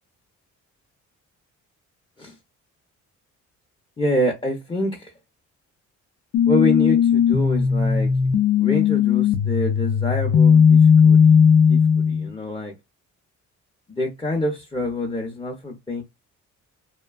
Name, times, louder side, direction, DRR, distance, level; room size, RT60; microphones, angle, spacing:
voice 1, 4.0-5.1 6.5-8.1 8.6-11.4 11.7-12.7 13.9-16.0, left 1 dB, 15° left, 0.6 m, -26 dB
sound 1, 6.3-12.3, left 7 dB, 65° left, 0.5 m, -16 dB
2.7 x 2.2 x 2.3 m
cardioid pair, 90°, 30 cm